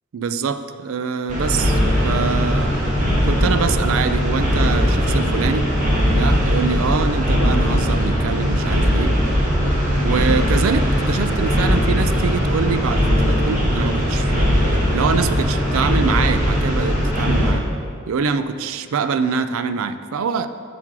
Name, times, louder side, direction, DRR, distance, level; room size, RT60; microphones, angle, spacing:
voice 1, 0.1-1.8 2.0-2.8 3.2-5.7 6.2-9.2 10.0-14.6 14.9-17.6 18.1-20.5, right 5 dB, 80° right, 11 dB, 0.4 m, -24 dB
sound 1, 1.3-17.5, equal, 40° right, 1.6 m, -19 dB
7.4 x 6.1 x 4.7 m, 2.2 s
head